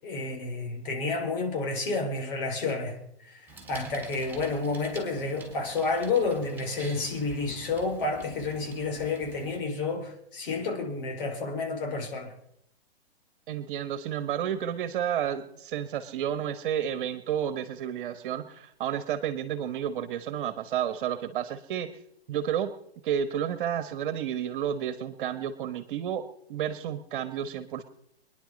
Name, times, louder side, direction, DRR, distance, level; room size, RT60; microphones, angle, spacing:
voice 1, 0.0-3.0 3.3-3.4 3.7-12.3, left 3 dB, 55° left, 4.9 m, -30 dB
Bicycle, 3.5-9.6, right 4 dB, 5° right, 4.5 m, -48 dB
voice 2, 13.5-22.0 22.3-22.7 23.0-27.8, right 9 dB, 55° right, 1.4 m, -31 dB
24.0 x 10.5 x 5.2 m
hypercardioid pair, 130°, 32 cm